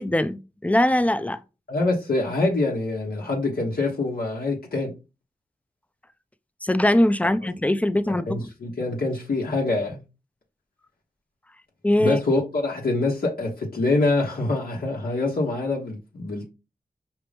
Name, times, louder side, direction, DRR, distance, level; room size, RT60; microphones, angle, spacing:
voice 1, 0.0-1.4 6.6-8.5 11.8-12.2, left 1 dB, 10° left, 0.5 m, -21 dB
voice 2, 1.7-4.9 8.1-10.0 12.0-16.5, left 2 dB, 80° left, 1.1 m, -25 dB
5.0 x 3.0 x 3.3 m
cardioid pair, 50°, 15 cm